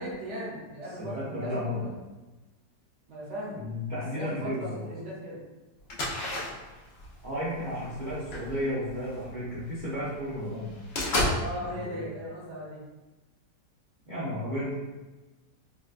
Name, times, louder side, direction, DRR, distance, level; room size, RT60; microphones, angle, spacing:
voice 1, 0.0-1.9 3.1-3.6 3.9-5.5 11.4-12.8, equal, 55° right, -6 dB, 0.9 m, -38 dB
voice 2, 1.0-1.9 3.5-4.8 7.2-10.7 11.4-12.1 14.1-14.7, left 1 dB, 80° right, -11 dB, 0.4 m, -33 dB
sound 1, 5.9-9.7 10.1-10.2 10.5-11.4, left 1 dB, 80° left, 0.5 m, -32 dB
3.8 x 2.2 x 2.4 m, 1.2 s
omnidirectional pair, 1.9 m